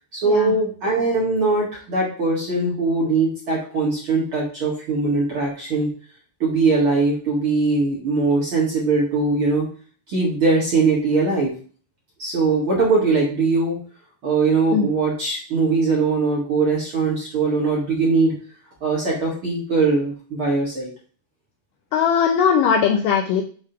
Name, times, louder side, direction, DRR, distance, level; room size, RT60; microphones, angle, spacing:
voice 1, 0.1-5.9 6.4-9.7 10.1-11.5 12.2-13.8 14.2-18.3 18.8-20.9, right 3 dB, 45° right, -4 dB, 1.8 m, -21 dB
voice 2, 21.9-23.4, left 7 dB, 80° left, 3 dB, 2.0 m, -19 dB
7.3 x 3.4 x 5.7 m, 0.42 s
omnidirectional pair, 4.5 m